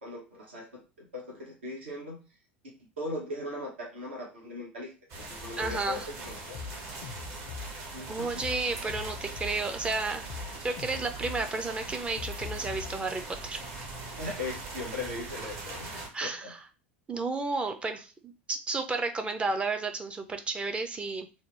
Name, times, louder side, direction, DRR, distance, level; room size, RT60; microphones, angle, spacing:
voice 1, 0.0-2.2 3.0-4.9 5.2-6.6 7.9-8.5 14.2-16.5, left 1 dB, 70° right, -2 dB, 1.0 m, -39 dB
sound 1, 5.1-16.1, right 3 dB, 45° right, 1.0 m, -41 dB
sound 2, 5.6-6.0 6.3-7.9 8.2-9.8 10.1-13.2, left 6 dB, 55° left, 0.4 m, -42 dB
voice 2, 5.6-6.1 8.1-10.3 10.6-13.6 16.1-16.6 17.1-21.3, right 3 dB, 15° right, 6 dB, 0.5 m, -32 dB
2.8 x 2.0 x 3.2 m, 0.32 s
figure-of-eight pair, 75°, 6 cm